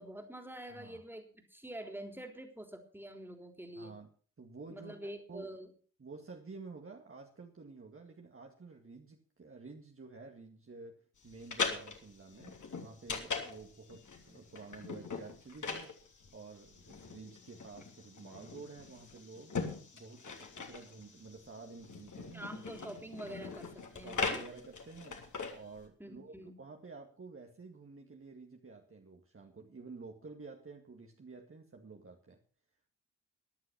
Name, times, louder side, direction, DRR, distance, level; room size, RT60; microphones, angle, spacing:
voice 1, 0.0-4.0 4.7-5.7 22.3-24.4 26.0-26.6, right 1 dB, 5° right, 6 dB, 3.6 m, -46 dB
voice 2, 0.7-1.0 3.8-4.1 4.4-5.6 6.0-12.5 12.8-15.9 16.3-19.5 19.9-22.5 24.0-25.2 25.5-32.4, right 4 dB, 30° right, 2 dB, 2.1 m, -51 dB
sound 1, 11.2-25.9, left 4 dB, 40° left, 3.2 m, -41 dB
13.5 x 11.0 x 5.9 m, 0.41 s
figure-of-eight pair, 40°, 46 cm